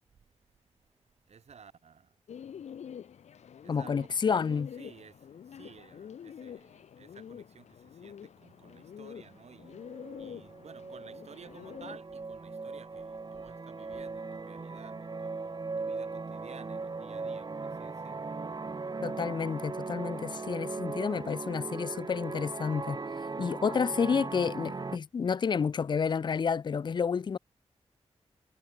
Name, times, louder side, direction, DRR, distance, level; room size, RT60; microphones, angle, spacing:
voice 1, 1.3-2.2 3.6-18.3 19.1-19.2 20.8-21.0 21.2-21.4, right 6 dB, 75° right, 4.5 m, -54 dB
Bird, 2.3-12.0, left 8 dB, 90° left, 2.8 m, -47 dB
voice 2, 3.7-4.7 19.0-23.0 23.4-27.4, left 6 dB, 45° left, 0.4 m, -30 dB
sound 1, 9.2-9.3 9.6-25.0, right 4 dB, 40° right, 1.5 m, -39 dB
cardioid pair, 65°, 11 cm